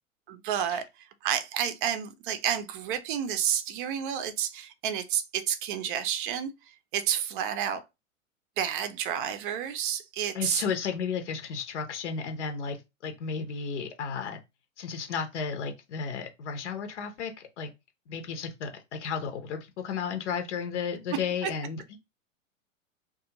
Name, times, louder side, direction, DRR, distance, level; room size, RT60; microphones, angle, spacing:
voice 1, 0.3-7.8 8.6-10.6 21.1-21.5, right 9 dB, 40° right, 0.5 m, -30 dB
voice 2, 10.3-12.8 13.0-14.4 14.8-17.7 18.1-22.0, left 6 dB, 60° left, 0.8 m, -33 dB
2.4 x 2.3 x 2.9 m
figure-of-eight pair, 105°, 40 cm